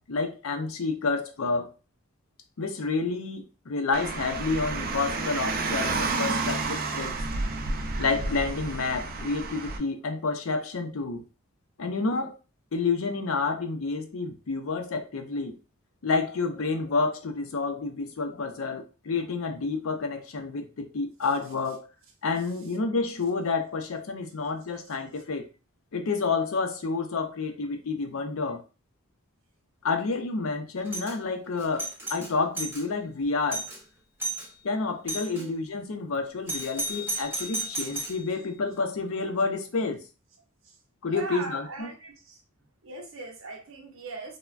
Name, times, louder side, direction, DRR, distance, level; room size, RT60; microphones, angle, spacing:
voice 1, 0.0-1.7 2.6-7.2 8.0-11.3 11.8-12.3 12.7-15.6 16.0-21.9 22.2-25.5 25.9-28.6 29.8-33.7 34.6-40.0 41.0-41.9, left 4 dB, 70° left, 0.5 m, -29 dB
Car, 3.9-9.8, right 3 dB, 45° right, 0.4 m, -30 dB
Doorbell, 30.9-31.2 31.6-32.8 33.2-33.3 33.5-33.8 34.2-34.5 35.1-35.4 36.5-38.2, right 1 dB, 10° right, 0.7 m, -33 dB
voice 2, 35.3-35.6 36.5-36.6 37.1-37.2 40.6-40.8 41.1-42.4 42.8-44.4, right 3 dB, 65° right, 0.7 m, -40 dB
3.2 x 2.1 x 2.4 m
head